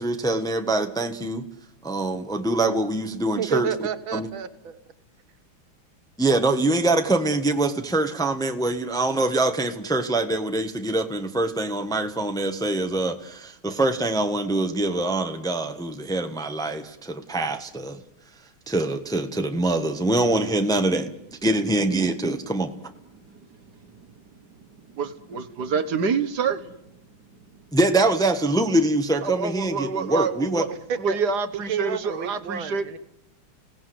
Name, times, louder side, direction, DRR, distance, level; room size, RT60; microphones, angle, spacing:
voice 1, 0.0-1.4 1.8-3.7 4.1-4.3 6.2-18.0 18.7-21.1 21.4-22.7 27.7-30.6, right 2 dB, ahead, 6 dB, 1.2 m, -24 dB
voice 2, 3.4-4.8 30.9-31.2 31.7-33.0, right 8 dB, 75° right, 13 dB, 2.2 m, -30 dB
voice 3, 23.1-26.9 27.5-27.6 29.2-32.9, right 5 dB, 55° right, 10 dB, 1.8 m, -28 dB
26.5 x 17.5 x 8.0 m, 0.84 s
omnidirectional pair, 2.2 m